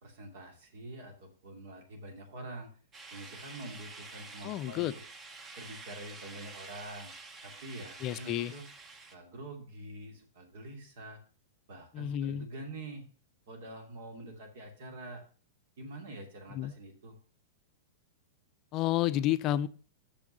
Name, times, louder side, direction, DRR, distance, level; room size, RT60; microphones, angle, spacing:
voice 1, 0.0-2.7 3.1-4.9 5.6-7.1 7.4-8.7 9.1-11.2 11.7-13.0 13.5-15.2 15.8-17.2, right 1 dB, 60° right, 3 dB, 2.6 m, -46 dB
sound 1, 2.9-9.2, right 3 dB, 25° right, 1.1 m, -48 dB
voice 2, 4.4-4.9 8.0-8.5 11.9-12.5 16.6-16.7 18.7-19.7, left 13 dB, 40° left, 14 dB, 0.5 m, -30 dB
6.5 x 5.9 x 6.6 m, 0.40 s
hypercardioid pair, 100°, 0 cm